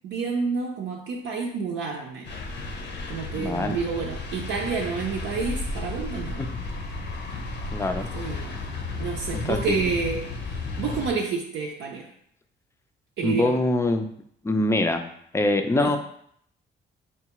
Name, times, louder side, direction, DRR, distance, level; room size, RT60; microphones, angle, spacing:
voice 1, 0.0-2.3 3.1-6.4 8.0-8.5 9.0-12.1 13.2-13.6 15.8-15.9, right 5 dB, 75° right, -2 dB, 0.6 m, -29 dB
sound 1, 2.2-11.1, left 3 dB, 60° left, 0.6 m, -33 dB
voice 2, 3.4-3.8 6.4-6.5 7.7-8.1 9.3-9.9 13.2-14.1 14.4-16.0, left 2 dB, 15° left, 6 dB, 0.4 m, -24 dB
4.6 x 2.3 x 2.9 m, 0.67 s
cardioid pair, 90°, 20 cm